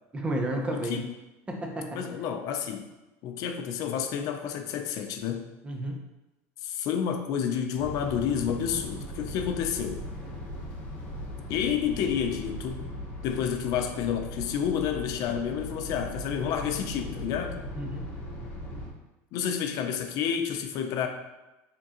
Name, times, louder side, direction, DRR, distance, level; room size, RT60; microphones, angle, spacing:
voice 1, 0.1-1.0 1.5-2.0 5.6-6.0 17.8-18.0, right 1 dB, 15° right, 2 dB, 0.7 m, -31 dB
voice 2, 0.7-1.1 1.9-2.9 3.2-5.4 6.6-10.0 11.5-12.8 13.2-17.6 19.3-21.1, left 8 dB, 55° left, 6 dB, 0.5 m, -30 dB
sound 1, 7.8-18.9, left 1 dB, 25° left, 1.5 m, -39 dB
4.5 x 3.7 x 2.9 m, 1.0 s
supercardioid pair, 130°, 8 cm